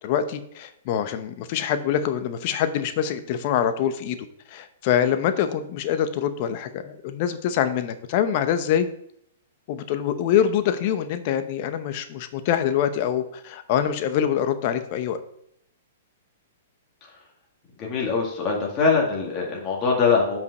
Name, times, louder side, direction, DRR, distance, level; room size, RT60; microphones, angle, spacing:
voice 1, 0.0-4.2 4.5-8.9 9.7-15.2, left 9 dB, 50° left, 10 dB, 0.8 m, -24 dB
voice 2, 17.8-20.4, left 5 dB, 30° left, -2 dB, 2.0 m, -22 dB
5.4 x 5.3 x 6.6 m, 0.71 s
hypercardioid pair, 125°, 0 cm